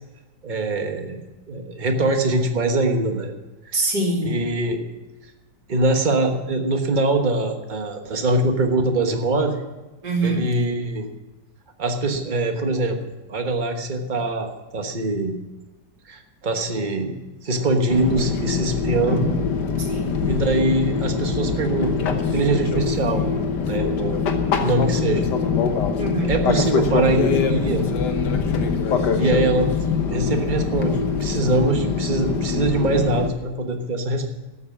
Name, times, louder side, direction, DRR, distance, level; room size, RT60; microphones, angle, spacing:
voice 1, 0.4-3.3 4.2-4.8 5.7-9.6 10.2-11.1 11.8-13.0 13.3-15.4 16.1-17.2 17.4-19.4 20.2-23.3 23.6-24.2 24.6-25.3 26.3-27.8 29.1-29.7 30.1-34.3, right 2 dB, 30° right, 5 dB, 1.3 m, -23 dB
voice 2, 3.7-4.5 10.0-10.5 19.8-20.2 26.0-26.4, right 2 dB, 70° right, 0 dB, 3.1 m, -24 dB
Fixed-wing aircraft airplane, 17.9-33.3, left 5 dB, 70° left, 1.7 m, -23 dB
13.0 x 8.5 x 7.2 m, 1.2 s
omnidirectional pair, 1.9 m